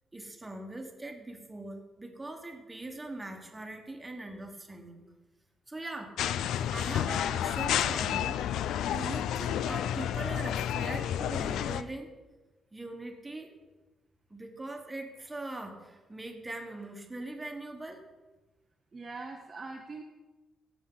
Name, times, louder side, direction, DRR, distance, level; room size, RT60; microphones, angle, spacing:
voice 1, 0.1-5.0 5.7-12.1 12.7-13.5 14.3-18.1, right 2 dB, 10° right, 3 dB, 1.4 m, -41 dB
sound 1, 6.2-11.8, left 10 dB, 90° left, 0.4 m, -30 dB
voice 2, 18.9-20.0, right 3 dB, 30° right, 1 dB, 0.7 m, -42 dB
16.5 x 7.1 x 3.9 m, 1.2 s
cardioid pair, 150°, 0 cm